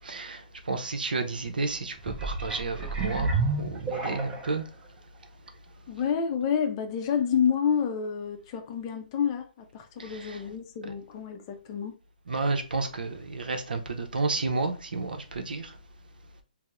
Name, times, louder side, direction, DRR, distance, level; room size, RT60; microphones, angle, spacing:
voice 1, 0.0-5.0 5.4-5.5 10.0-10.4 12.3-15.8, right 3 dB, 85° right, 0.6 m, -31 dB
sound 1, 2.0-4.6 5.2-5.3, right 3 dB, 15° right, 0.5 m, -30 dB
voice 2, 5.9-12.0, left 7 dB, 30° left, 0.5 m, -29 dB
2.8 x 2.0 x 3.4 m
hypercardioid pair, 140°, 5 cm